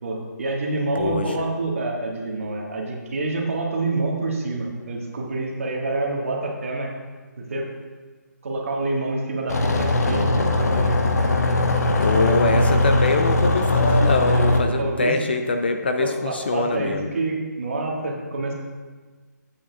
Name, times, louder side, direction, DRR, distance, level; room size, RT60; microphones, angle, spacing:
voice 1, 0.0-6.9 7.4-7.7 8.4-11.0 12.3-12.8 14.3-14.5 14.8-15.1 16.0-18.5, right 2 dB, 45° right, -1 dB, 1.5 m, -27 dB
voice 2, 1.0-1.4 12.0-17.1, left 3 dB, 35° left, 6 dB, 0.4 m, -23 dB
sound 1, 9.5-14.6, left 2 dB, 60° left, 1.0 m, -20 dB
11.0 x 8.6 x 2.3 m, 1.4 s
hypercardioid pair, 170°, 10 cm